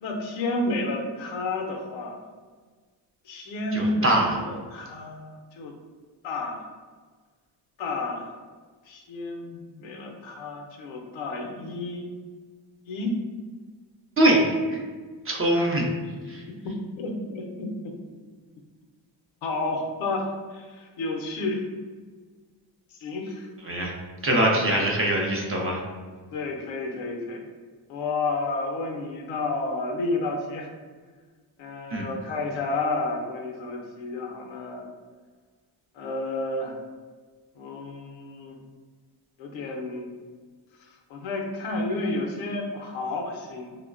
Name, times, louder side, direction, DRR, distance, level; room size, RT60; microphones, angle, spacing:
voice 1, 0.0-2.2 3.3-5.7 6.2-6.7 7.8-8.3 8.9-12.1 12.8-13.2 15.5-15.7 16.5-17.9 19.4-20.2 20.5-21.7 23.0-23.5 26.3-27.4 27.9-30.7 31.6-34.8 35.9-36.8 37.6-38.6 39.4-40.1 40.8-43.8, left 2 dB, 85° left, 2 dB, 0.6 m, -31 dB
voice 2, 3.7-4.4 14.2-14.4 14.7-14.8 15.3-15.9 16.3-16.4 23.6-23.9 24.2-25.8 31.9-32.1, right 1 dB, 30° right, -1 dB, 0.5 m, -22 dB
3.0 x 2.1 x 2.4 m, 1.5 s
cardioid pair, 85°, 46 cm